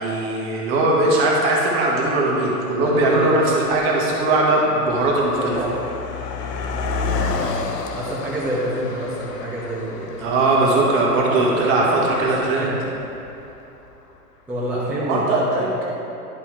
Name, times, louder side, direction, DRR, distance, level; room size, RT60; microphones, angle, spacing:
voice 1, 0.0-5.6 10.2-12.7 15.0-15.7, right 2 dB, 25° right, -3 dB, 1.3 m, -19 dB
Car passing by, 2.0-2.1 2.9-3.2 3.5-13.9, left 4 dB, 80° left, 0.9 m, -31 dB
voice 2, 2.8-3.3 5.3-5.7 7.9-10.2 10.7-10.9 11.3-12.8 14.5-15.7, right 1 dB, 5° right, -9 dB, 1.0 m, -27 dB
10.5 x 5.5 x 3.1 m, 2.8 s
hypercardioid pair, 140°, 48 cm